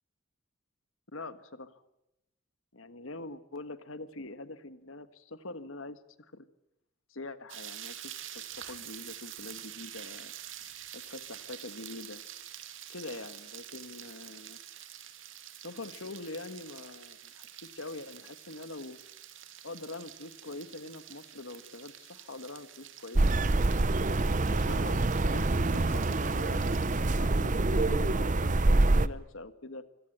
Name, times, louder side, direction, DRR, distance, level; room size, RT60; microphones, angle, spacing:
voice 1, 1.1-1.8 2.7-6.0 6.3-6.4 7.1-10.3 10.9-12.2 12.9-14.6 15.6-19.0 19.6-23.4 24.4-29.8, left 2 dB, 75° left, 12 dB, 1.7 m, -44 dB
sound 1, 7.5-27.2, right 11 dB, 65° right, 2.5 m, -47 dB
sound 2, 23.1-29.1, right 2 dB, 40° right, 0.8 m, -26 dB
26.0 x 17.5 x 8.9 m, 0.88 s
head